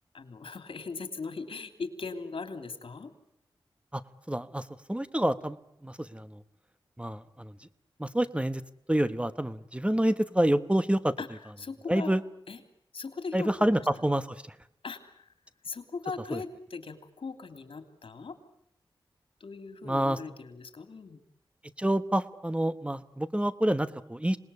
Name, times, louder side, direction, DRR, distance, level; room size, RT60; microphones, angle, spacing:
voice 1, 0.1-3.1 11.2-12.2 12.5-12.6 12.9-13.7 14.8-15.3 15.6-18.4 19.4-21.2, left 4 dB, 75° left, 8 dB, 3.0 m, -39 dB
voice 2, 4.3-5.6 5.8-6.4 7.0-7.5 8.0-8.6 8.9-11.1 11.9-12.2 13.3-14.4 16.3-16.4 19.9-20.2 21.8-24.4, right 1 dB, 10° right, 13 dB, 1.1 m, -27 dB
26.5 x 20.0 x 9.7 m, 0.79 s
cardioid pair, 55°, 9 cm